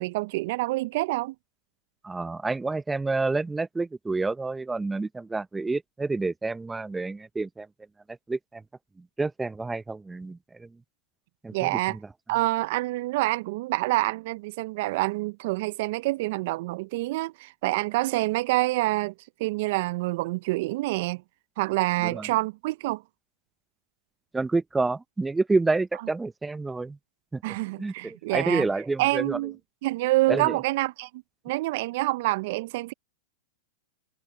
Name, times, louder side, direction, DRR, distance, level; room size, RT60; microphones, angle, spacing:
voice 1, 0.0-1.3 11.5-12.0 12.3-19.1 19.4-21.2 21.6-23.0 27.4-28.7 29.0-29.5 29.8-32.9, right 20 dB, 55° right, 0.7 m, -27 dB
voice 2, 2.0-7.7 8.3-8.6 9.2-10.7 11.4-12.0 22.0-22.2 24.3-27.0 27.3-27.4 27.8-29.4 30.3-30.6, right 3 dB, 10° right, 0.9 m, -28 dB
hypercardioid pair, 105°, 0 cm